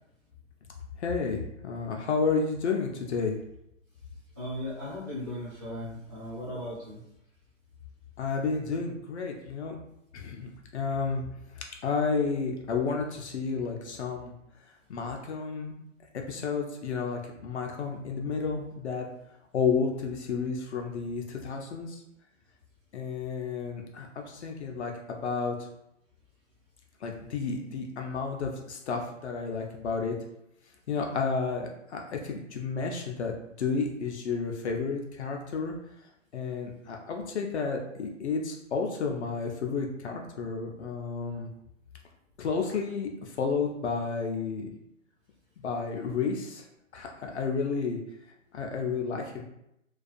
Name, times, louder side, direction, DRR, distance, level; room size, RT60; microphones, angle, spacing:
voice 1, 1.0-3.4 8.2-9.8 10.1-11.2 11.6-14.3 14.9-15.8 16.3-19.1 19.5-22.0 22.9-25.7 27.0-30.1 30.9-35.7 36.3-41.5 42.4-44.7 45.6-46.7 46.9-48.0 48.5-49.4, left 5 dB, 60° left, 2 dB, 0.5 m, -31 dB
voice 2, 4.4-7.0, left 1 dB, 15° right, -9 dB, 0.3 m, -37 dB
2.4 x 2.3 x 2.5 m, 0.80 s
hypercardioid pair, 150°, 39 cm